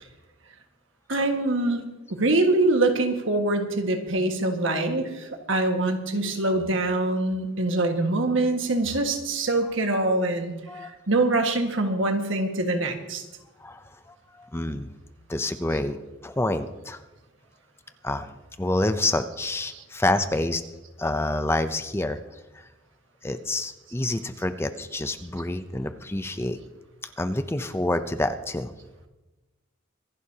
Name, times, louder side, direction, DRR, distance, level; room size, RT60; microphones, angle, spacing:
voice 1, 1.1-1.8 2.1-13.2, right 2 dB, 70° right, 4 dB, 1.7 m, -24 dB
voice 2, 13.6-14.9 15.3-16.0 16.2-17.0 18.0-18.3 18.6-20.6 21.0-22.2 22.5-22.7 23.2-26.6 27.2-28.7, left 2 dB, 10° left, 9 dB, 0.5 m, -27 dB
25.5 x 11.5 x 2.9 m, 1.1 s
head